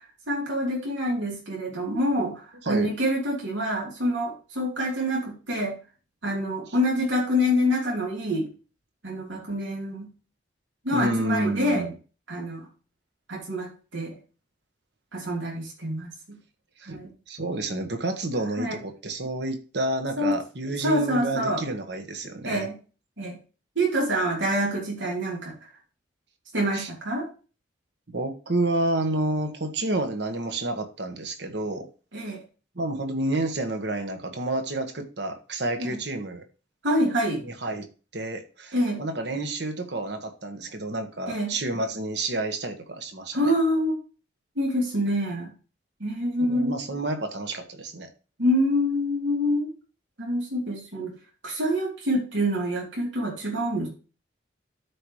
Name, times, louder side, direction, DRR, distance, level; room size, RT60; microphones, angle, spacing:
voice 1, 0.3-5.8 6.2-8.5 9.0-10.1 10.8-11.9 12.3-12.7 13.3-14.2 15.1-16.4 16.8-17.1 18.6-18.8 20.2-20.4 20.8-21.6 22.4-22.8 23.2-23.4 23.7-25.5 26.5-27.3 32.1-32.4 35.8-36.0 36.8-37.4 38.7-39.0 41.3-41.5 43.3-44.0 44.5-45.5 46.0-46.8 48.4-49.7 50.2-51.1 51.4-53.9, equal, 80° right, -2 dB, 3.2 m, -26 dB
voice 2, 10.9-11.9 16.8-22.7 26.7-26.9 28.1-31.9 32.7-36.4 37.4-37.9 38.1-43.4 46.4-48.1, right 2 dB, 60° right, 6 dB, 1.4 m, -29 dB
12.5 x 4.9 x 3.1 m, 0.35 s
head